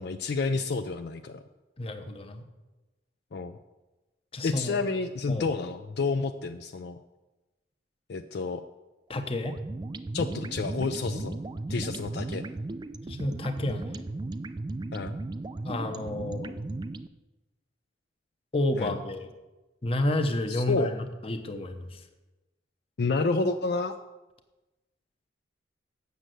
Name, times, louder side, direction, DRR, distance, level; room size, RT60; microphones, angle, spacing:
voice 1, 0.0-1.4 3.3-3.6 4.4-7.0 8.1-8.7 10.1-11.4 11.7-12.4 14.9-15.2 18.8-18.9 20.5-21.0 23.0-24.0, left 3 dB, 60° left, 8 dB, 0.4 m, -29 dB
voice 2, 1.8-2.4 4.3-4.8 5.3-5.5 9.1-9.6 13.1-14.0 15.6-16.7 18.5-19.3 19.8-22.0, left 1 dB, 30° left, 7 dB, 0.8 m, -30 dB
sound 1, 9.4-17.1, right 2 dB, 25° right, 0.3 m, -36 dB
8.2 x 6.5 x 7.6 m, 1.1 s
head